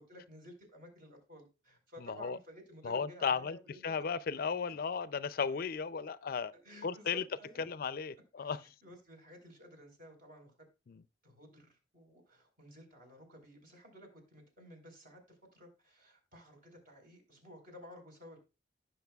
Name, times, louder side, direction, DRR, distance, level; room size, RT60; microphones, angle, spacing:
voice 1, 0.0-3.9 6.6-7.6 8.4-8.5 8.8-10.5 11.2-18.4, equal, 50° right, 4.3 m, -54 dB
voice 2, 2.0-2.4 2.8-3.6 3.8-6.5 6.8-7.3 7.6-8.7 10.9-11.0, left 6 dB, 55° left, 0.4 m, -35 dB
18.5 x 6.3 x 2.3 m
head